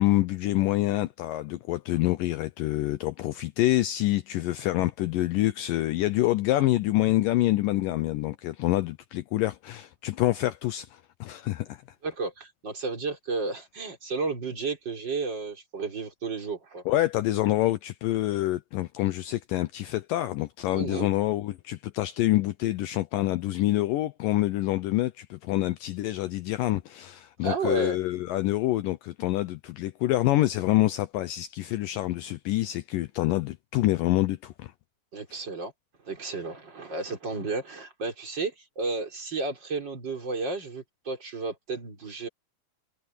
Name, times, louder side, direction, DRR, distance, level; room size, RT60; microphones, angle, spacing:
voice 1, 0.0-11.8 16.9-34.7 35.3-35.4, left 16 dB, 75° left, 2.1 m, -26 dB
voice 2, 12.0-16.8 20.7-21.1 27.4-28.0 35.1-35.7 36.0-42.3, right 3 dB, 30° right, 4.8 m, -32 dB
omnidirectional pair, 4.4 m